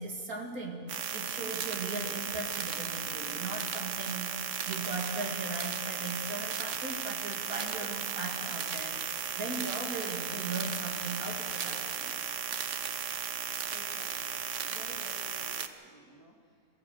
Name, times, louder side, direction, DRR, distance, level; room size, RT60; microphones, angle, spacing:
voice 1, 0.0-9.0 9.4-12.1, right 3 dB, 75° right, 1 dB, 2.7 m, -38 dB
sound 1, 0.9-15.7, right 7 dB, 60° right, 1.2 m, -35 dB
voice 2, 13.7-16.7, right 1 dB, 10° left, -1 dB, 2.5 m, -53 dB
23.0 x 15.0 x 7.9 m, 2.2 s
omnidirectional pair, 1.5 m